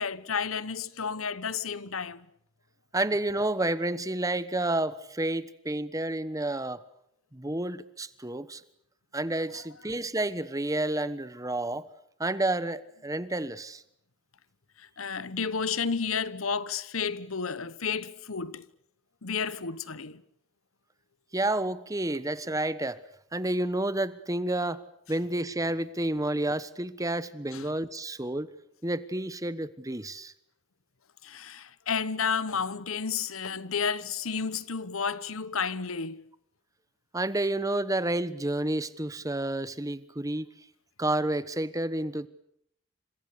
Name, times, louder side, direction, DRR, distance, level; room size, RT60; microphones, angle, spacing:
voice 1, 0.0-2.3 14.8-18.6 19.2-20.2 27.5-27.7 31.2-36.2, left 6 dB, 90° left, 1.2 m, -31 dB
voice 2, 2.9-6.8 7.3-8.6 9.1-11.9 12.2-13.8 21.3-23.0 23.3-24.8 25.1-28.5 28.8-30.3 37.1-40.5 41.0-42.3, right 1 dB, 15° right, 1.2 m, -30 dB
29.5 x 26.5 x 6.8 m
head